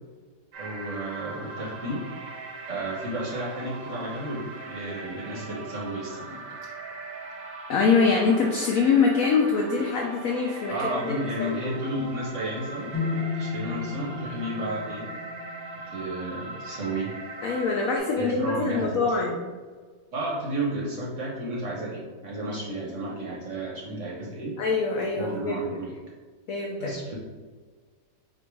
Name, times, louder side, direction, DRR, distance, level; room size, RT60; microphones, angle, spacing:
sound 1, 0.5-18.0, right 3 dB, 85° right, 1.5 m, -40 dB
voice 1, 0.6-2.0 2.7-6.4 10.7-15.1 15.9-17.2 18.2-19.1 20.1-24.5 25.1-25.9 26.8-27.2, right 1 dB, 55° right, -3 dB, 1.0 m, -32 dB
voice 2, 7.7-11.5 17.4-19.5 24.6-25.6 26.5-26.9, left 4 dB, 80° left, 0 dB, 0.7 m, -24 dB
sound 2, 12.9-16.9, left 4 dB, 20° left, 0.4 m, -34 dB
4.5 x 2.5 x 4.5 m, 1.5 s
omnidirectional pair, 2.0 m